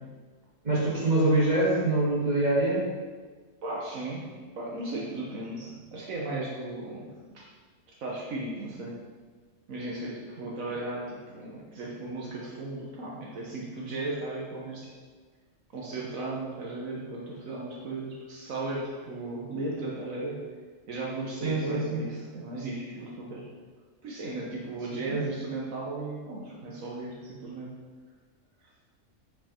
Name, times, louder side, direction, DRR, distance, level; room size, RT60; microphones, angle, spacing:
voice 1, 0.6-2.8 21.4-22.0 25.1-25.2, right 2 dB, 30° right, -8 dB, 2.6 m, -24 dB
voice 2, 3.6-7.5 8.0-9.0 9.7-14.9 15.7-20.4 20.9-23.5 24.0-27.7, right 2 dB, 75° right, -4 dB, 1.5 m, -36 dB
7.9 x 5.1 x 4.3 m, 1.4 s
omnidirectional pair, 1.4 m